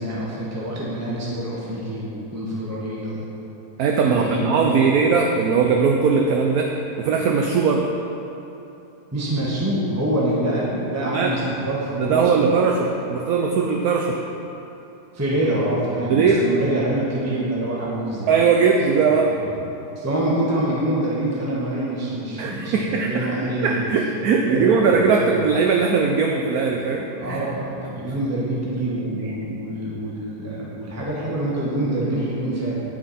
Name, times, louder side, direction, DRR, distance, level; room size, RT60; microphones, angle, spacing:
voice 1, 0.0-3.2 4.0-4.9 9.1-12.3 15.1-18.3 19.4-19.5 20.0-23.8 24.3-25.3 27.2-32.8, right 1 dB, 10° right, -6 dB, 1.2 m, -26 dB
voice 2, 3.8-6.7 7.0-7.9 11.0-11.3 11.9-14.2 16.1-16.5 18.3-19.3 22.4-27.5, right 5 dB, 65° right, 1 dB, 1.0 m, -20 dB
9.6 x 8.9 x 4.2 m, 2.9 s
omnidirectional pair, 1.8 m